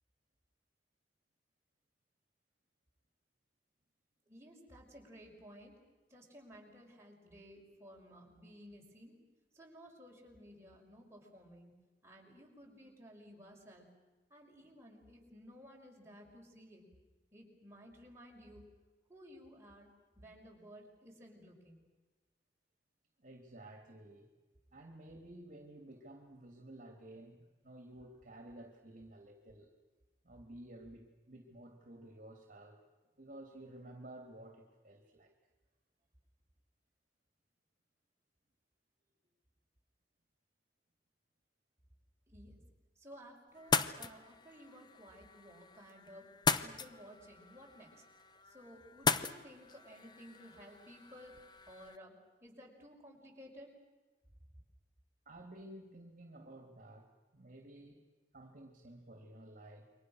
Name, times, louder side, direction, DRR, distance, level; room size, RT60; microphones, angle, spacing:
voice 1, 4.3-5.8 6.1-9.2 9.5-11.7 12.0-13.9 14.3-16.8 17.3-18.6 19.1-19.9 20.2-21.8 42.3-42.6 43.0-46.3 46.6-48.0 48.4-51.3 51.7-53.7, equal, 15° right, -2 dB, 5.8 m, -55 dB
voice 2, 23.2-24.3 24.7-29.7 30.2-32.8 33.2-35.3 55.2-58.0 58.3-59.9, right 1 dB, 50° right, 4 dB, 2.9 m, -53 dB
sound 1, 43.5-52.0, left 4 dB, 25° left, 0.9 m, -38 dB
29.0 x 24.0 x 6.5 m, 1.2 s
head